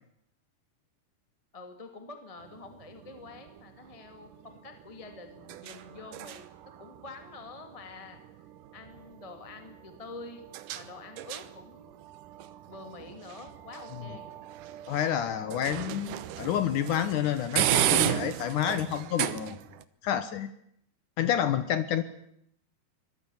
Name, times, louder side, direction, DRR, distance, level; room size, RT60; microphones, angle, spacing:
voice 1, 1.5-6.5 6.8-8.2 8.7-10.4 10.7-11.9 12.7-14.3, left 3 dB, 15° left, 6 dB, 1.1 m, -46 dB
sound 1, 2.4-19.8, right 12 dB, 85° right, 1.8 m, -35 dB
voice 2, 14.9-19.6 20.0-20.5 21.2-22.0, left 10 dB, 85° left, 12 dB, 1.8 m, -29 dB
26.0 x 22.0 x 7.2 m, 0.73 s
omnidirectional pair, 5.3 m